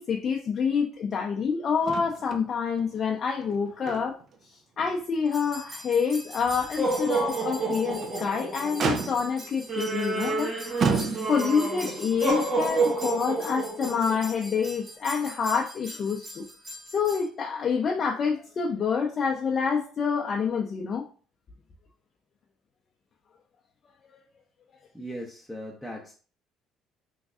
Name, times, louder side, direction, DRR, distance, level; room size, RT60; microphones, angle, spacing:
voice 1, 0.0-4.2 4.8-10.5 11.3-16.4 16.9-21.1, left 6 dB, 45° left, 0.5 m, -27 dB
Motor vehicle (road), 1.8-2.5 2.8-2.9 3.4-4.3 4.8-4.9 5.4-5.5 7.8-8.2 8.8-9.5 10.2-10.4 10.8-11.6 12.7-12.8, right 5 dB, 55° right, 0.5 m, -30 dB
sound 1, 5.3-17.2, right 3 dB, 35° right, 1.1 m, -31 dB
voice 2, 24.9-26.1, equal, ahead, 0.7 m, -38 dB
3.5 x 3.1 x 2.4 m
supercardioid pair, 90°, 0 cm